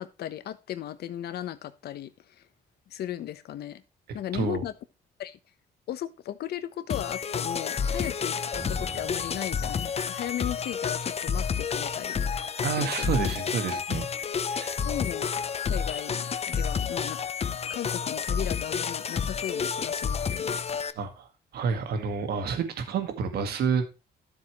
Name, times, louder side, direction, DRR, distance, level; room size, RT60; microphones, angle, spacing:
voice 1, 0.0-2.4 2.9-3.8 4.1-4.7 5.2-5.4 5.9-12.2 12.7-13.1 14.8-15.3 15.6-17.2 17.7-21.0, left 11 dB, 80° left, 1.1 m, -36 dB
voice 2, 4.3-4.6 12.6-14.1 14.5-14.8 21.0-23.8, right 6 dB, 80° right, 1.9 m, -29 dB
sound 1, 6.9-20.9, left 6 dB, 40° left, 0.7 m, -30 dB
sound 2, 8.5-11.3, right 3 dB, 25° right, 1.1 m, -45 dB
12.5 x 7.4 x 3.2 m
cardioid pair, 95°, 16 cm